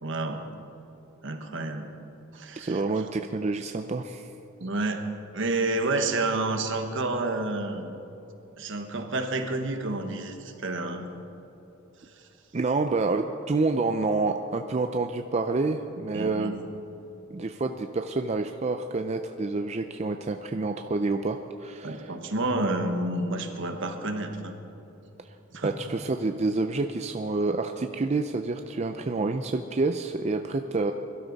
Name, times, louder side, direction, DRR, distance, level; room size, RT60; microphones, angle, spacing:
voice 1, 0.0-0.4 1.2-1.9 2.3-2.8 4.6-7.9 8.6-11.1 16.1-16.5 21.8-24.6 25.5-25.8, right 2 dB, 65° right, 5 dB, 1.3 m, -29 dB
voice 2, 2.6-4.3 12.5-16.5 17.3-22.1 25.6-30.9, right 3 dB, 35° right, 6 dB, 0.5 m, -28 dB
22.0 x 12.5 x 4.1 m, 2.9 s
head